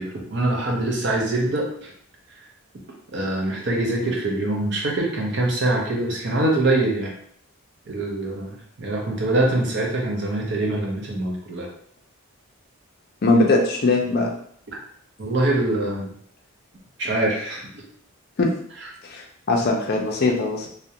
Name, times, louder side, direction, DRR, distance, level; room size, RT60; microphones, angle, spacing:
voice 1, 0.0-1.9 3.1-7.1 7.9-11.7 15.2-16.1 17.0-17.8, right 2 dB, 55° right, 0 dB, 0.6 m, -24 dB
voice 2, 13.2-14.3 18.4-18.5 19.0-20.7, left 2 dB, 45° left, 1 dB, 0.4 m, -20 dB
2.4 x 2.1 x 2.7 m, 0.62 s
head